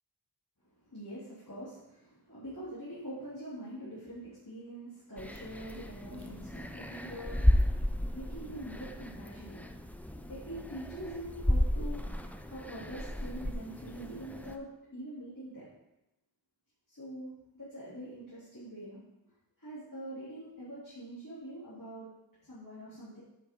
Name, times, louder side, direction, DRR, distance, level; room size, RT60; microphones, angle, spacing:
voice 1, 0.7-9.6 9.9-10.0 10.3-12.0 12.4-15.7 16.9-19.0 19.2-22.1 22.4-23.2, right 1 dB, 45° left, -10 dB, 3.1 m, -44 dB
sound 1, 5.2-14.6, left 1 dB, 5° left, 0.6 m, -33 dB
8.6 x 7.5 x 3.8 m, 0.95 s
wide cardioid pair, 40°, 43 cm